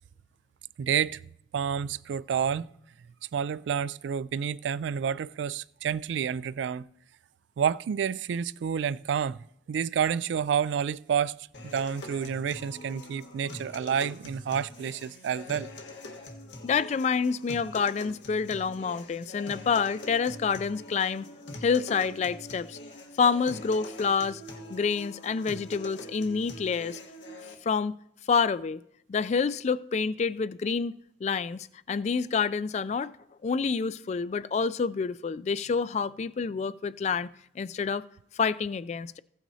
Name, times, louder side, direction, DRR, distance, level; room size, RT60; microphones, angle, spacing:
voice 1, 0.8-1.2 1.5-2.7 3.3-6.8 7.6-9.4 9.7-11.5 11.7-15.7, right 7 dB, 85° right, 0.3 m, -29 dB
sound 1, 11.5-27.6, left 1 dB, 85° left, 1.4 m, -44 dB
voice 2, 16.6-21.3 21.6-22.8 23.2-24.4 24.7-27.0 27.6-27.9 28.3-28.8 29.1-33.1 33.4-37.3 37.6-38.0 38.3-39.2, left 5 dB, 40° left, 0.3 m, -28 dB
15.5 x 9.0 x 2.7 m
head